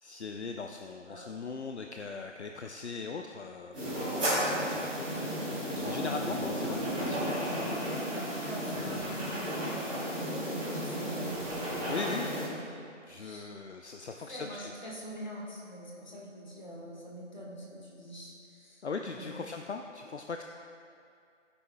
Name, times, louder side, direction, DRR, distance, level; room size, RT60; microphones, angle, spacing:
voice 1, 0.0-5.3 5.8-7.9 11.8-12.3 13.1-14.7 18.8-20.4, left 4 dB, 65° left, 4 dB, 0.6 m, -40 dB
sound 1, 3.7-12.4, equal, 5° right, 1.5 m, -33 dB
voice 2, 8.4-9.6 10.1-11.4 13.2-13.5 14.1-19.3, equal, 35° left, -3 dB, 1.6 m, -45 dB
14.0 x 9.8 x 2.3 m, 2.4 s
figure-of-eight pair, 175°, 37 cm